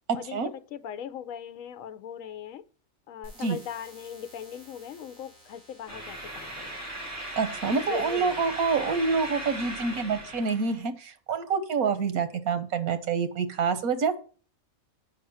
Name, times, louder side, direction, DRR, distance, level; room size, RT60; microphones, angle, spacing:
voice 1, 0.1-2.6 3.1-6.7 7.9-8.4, left 9 dB, 70° left, 1.1 m, -39 dB
sound 1, 3.2-9.2, equal, 55° right, 5.9 m, -55 dB
sound 2, 5.9-10.8, right 1 dB, 10° right, 3.4 m, -38 dB
voice 2, 7.3-14.1, right 5 dB, 85° right, 1.5 m, -27 dB
8.6 x 5.1 x 6.2 m
omnidirectional pair, 1.5 m